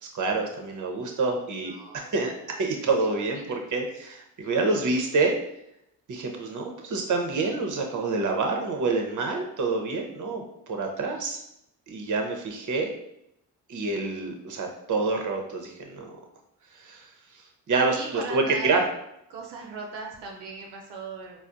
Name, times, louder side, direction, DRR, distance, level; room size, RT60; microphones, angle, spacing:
voice 1, 0.0-2.3 2.6-5.3 6.1-11.4 11.9-12.9 13.7-16.1 16.8-17.1 17.7-18.8, right 3 dB, 45° right, 3 dB, 0.8 m, -27 dB
voice 2, 1.6-2.1 2.5-2.9 3.3-3.6 17.7-18.8 19.3-21.4, right 4 dB, 85° right, -1 dB, 0.6 m, -38 dB
4.2 x 2.1 x 2.5 m, 0.78 s
supercardioid pair, 45°, 41 cm